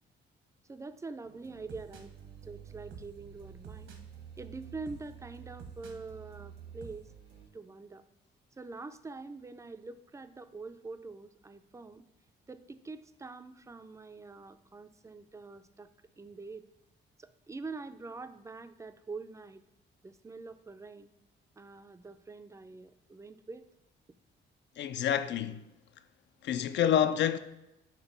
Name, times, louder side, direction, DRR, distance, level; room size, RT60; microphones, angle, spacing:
voice 1, 0.7-2.1 2.4-3.9 4.4-7.1 7.5-8.0 8.6-12.1 12.5-15.9 16.2-16.7 17.2-19.6 20.0-21.1 21.6-23.7, right 3 dB, 15° right, 0.4 m, -45 dB
sound 1, 1.2-7.5, right 7 dB, 75° right, 1.1 m, -49 dB
voice 2, 24.8-25.7 26.4-27.4, left 9 dB, 65° left, 0.5 m, -28 dB
6.1 x 3.1 x 5.4 m
cardioid pair, 90°, 20 cm